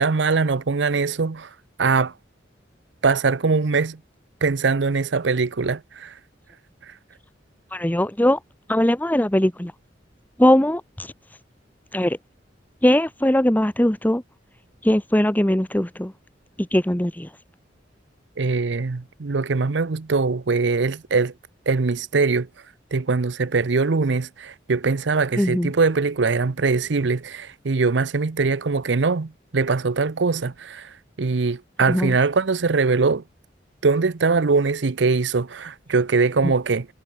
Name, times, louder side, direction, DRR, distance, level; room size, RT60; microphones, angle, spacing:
voice 1, 0.0-1.5 1.8-2.1 3.0-4.0 4.4-6.1 18.4-21.3 21.7-22.5 22.9-30.9 31.2-33.2 33.8-36.9, right 4 dB, 75° right, 0.7 m, -22 dB
voice 2, 7.7-8.4 8.7-9.7 10.4-11.1 11.9-12.2 12.8-14.2 14.8-16.1 16.7-17.3 25.4-25.7 31.9-32.1 36.4-36.5, left 1 dB, 10° left, 1.1 m, -20 dB
head